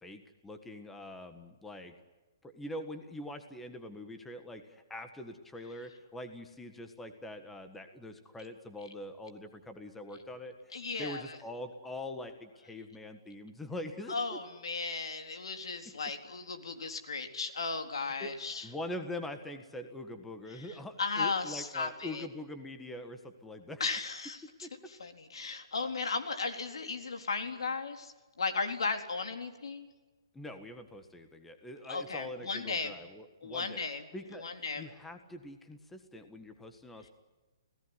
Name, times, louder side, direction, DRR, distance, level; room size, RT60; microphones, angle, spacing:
voice 1, 0.0-1.9 2.4-14.4 18.2-18.3 18.6-23.8 24.6-24.7 30.3-33.8 34.1-34.5 34.8-37.1, left 1 dB, 5° left, 7 dB, 1.6 m, -43 dB
voice 2, 10.7-11.4 14.1-18.7 20.5-22.3 23.8-24.4 24.9-29.9 31.9-32.9 33.4-34.1 34.3-34.9, left 4 dB, 90° left, 6 dB, 4.0 m, -36 dB
29.5 x 18.0 x 9.9 m, 1.2 s
hypercardioid pair, 165°, 3 cm